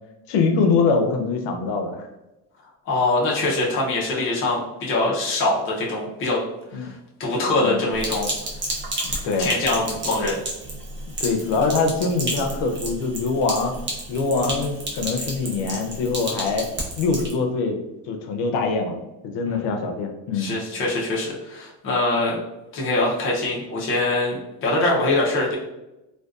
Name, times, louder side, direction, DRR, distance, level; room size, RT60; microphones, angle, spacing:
voice 1, 0.3-2.1 6.7-6.9 7.6-7.8 9.0-9.5 11.2-13.7 14.1-16.7 17.0-17.8 18.1-19.0 19.2-20.5, left 4 dB, 80° left, 4 dB, 0.6 m, -23 dB
voice 2, 2.9-6.4 6.7-6.9 7.2-8.3 9.4-10.4 19.5-19.8 20.3-22.4 22.7-25.6, left 2 dB, 30° left, -4 dB, 0.5 m, -23 dB
Sink (filling or washing), 8.0-17.3, right 1 dB, 30° right, 0.5 m, -31 dB
2.5 x 2.2 x 2.3 m, 0.96 s
cardioid pair, 150°, 42 cm